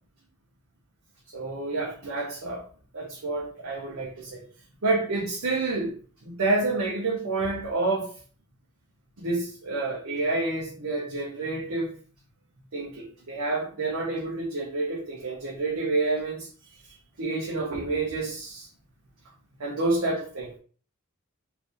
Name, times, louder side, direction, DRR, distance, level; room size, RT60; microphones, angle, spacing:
voice 1, 1.3-2.6 2.9-4.4 4.8-5.9 6.2-8.1 9.2-11.9 12.7-16.5 17.2-18.7 19.6-20.6, right 3 dB, 70° right, 0.7 m, -28 dB
2.8 x 2.6 x 3.6 m
head